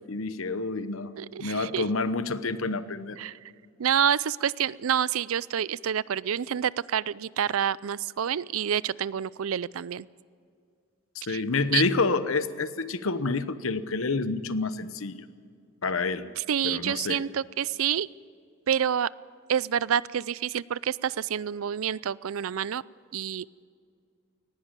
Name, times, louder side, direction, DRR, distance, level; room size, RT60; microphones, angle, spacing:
voice 1, 0.1-1.1 1.4-3.2 11.1-15.2 15.8-16.3 16.6-17.2, left 3 dB, 75° left, 13 dB, 1.0 m, -28 dB
voice 2, 1.2-1.8 3.2-3.3 3.8-10.0 11.3-11.4 11.7-11.8 16.4-18.1 18.7-19.1 19.5-22.8 23.1-23.6, right 8 dB, 80° right, 21 dB, 0.4 m, -28 dB
19.0 x 17.0 x 8.9 m, 2.3 s
head